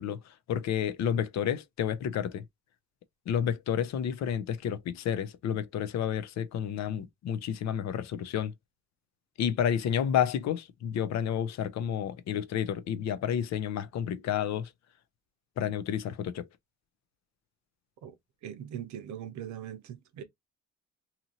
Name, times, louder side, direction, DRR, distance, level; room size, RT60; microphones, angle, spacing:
voice 1, 0.0-2.4 3.3-8.5 9.4-14.7 15.6-16.5, left 9 dB, 65° left, 0.5 m, -30 dB
voice 2, 18.4-20.2, right 10 dB, 70° right, 0.7 m, -40 dB
2.8 x 2.5 x 2.8 m
cardioid pair, 90°, 30 cm